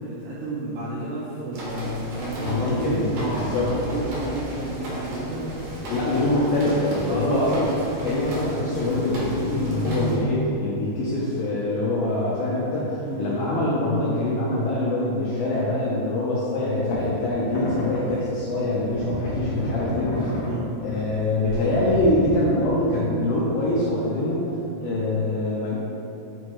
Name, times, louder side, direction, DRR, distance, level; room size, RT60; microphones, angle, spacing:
voice 1, 0.0-5.5 7.0-7.7 13.0-13.6 20.4-20.7 24.8-25.1, right 2 dB, 90° right, -7 dB, 2.1 m, -31 dB
sound 1, 1.5-10.2, equal, 70° right, 1.8 m, -32 dB
voice 2, 2.4-3.7 5.9-7.7 8.0-20.3 20.8-24.5 24.8-25.8, left 1 dB, 85° left, -7 dB, 2.0 m, -24 dB
Creaking Floorboard Edited, 16.9-17.0 17.5-18.0 18.6-20.6 21.0-21.2 21.4-22.2, left 1 dB, 65° left, 2.6 m, -30 dB
7.9 x 4.3 x 3.1 m, 2.7 s
omnidirectional pair, 5.1 m